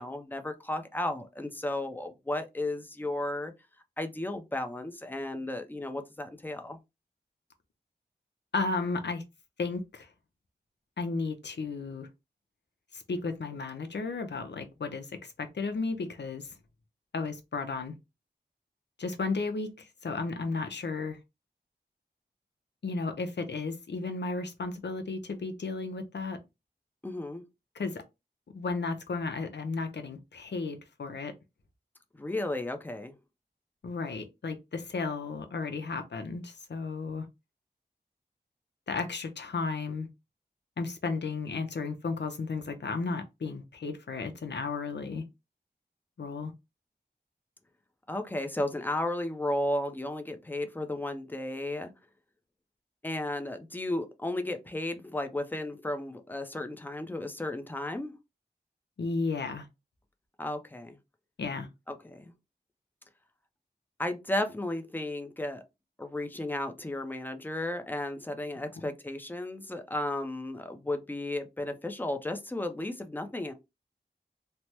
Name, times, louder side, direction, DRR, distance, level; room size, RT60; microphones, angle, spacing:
voice 1, 0.0-3.5 4.0-6.8 27.0-27.4 32.2-33.1 48.1-51.9 53.0-58.1 60.4-61.0 61.9-62.3 64.0-65.6 66.0-73.5, left 1 dB, 10° left, 0.5 m, -34 dB
voice 2, 8.5-9.2 9.6-10.1 11.0-12.1 12.9-16.5 17.1-17.9 19.0-21.2 22.8-26.4 27.7-28.0 28.5-31.3 33.8-37.3 38.9-40.1 40.8-45.2 46.2-46.5 59.0-59.7 61.4-61.7, left 4 dB, 85° left, 0.6 m, -34 dB
3.3 x 2.0 x 2.9 m
wide cardioid pair, 60°, 17 cm